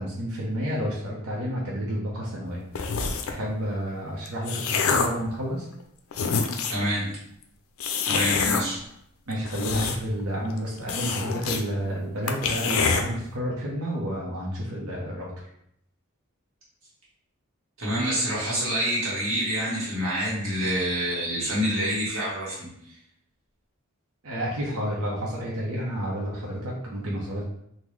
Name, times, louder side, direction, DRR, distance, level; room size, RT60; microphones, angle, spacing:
voice 1, 0.0-5.7 8.4-8.6 9.3-15.3 24.2-27.4, equal, 85° right, -5 dB, 0.7 m, -30 dB
sound 1, 2.7-3.4 4.1-5.2 5.8-5.9 6.1-6.9 7.8-8.6 9.3-10.2 10.5-10.6 10.9-11.6 11.9-12.0 12.3-13.0, left 5 dB, 75° left, 0.4 m, -26 dB
voice 2, 6.7-7.1 8.1-8.8 17.8-22.7, equal, 60° right, -8 dB, 1.2 m, -27 dB
3.7 x 2.1 x 3.1 m, 0.74 s
head